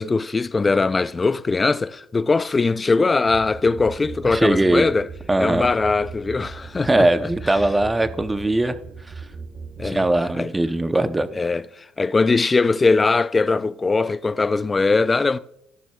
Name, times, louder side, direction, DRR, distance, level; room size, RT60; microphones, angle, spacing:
voice 1, 0.0-5.1 5.4-7.7 9.8-10.1 10.3-10.5 11.4-15.4, left 3 dB, 25° left, 0.3 m, -21 dB
sound 1, 3.3-10.3, right 5 dB, 50° right, 1.4 m, -38 dB
voice 2, 4.3-4.8 5.3-5.6 6.8-8.8 9.8-11.3, right 2 dB, 15° right, 0.7 m, -20 dB
15.5 x 6.2 x 2.3 m
supercardioid pair, 80°, 0 cm